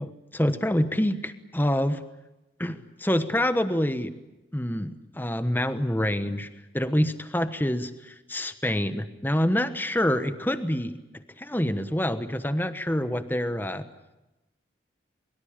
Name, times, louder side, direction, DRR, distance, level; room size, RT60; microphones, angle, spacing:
voice 1, 0.0-2.0 2.6-4.1 4.5-6.5 6.7-11.0 11.4-13.8, equal, 10° left, 11 dB, 1.1 m, -26 dB
23.0 x 23.0 x 8.9 m, 0.99 s
head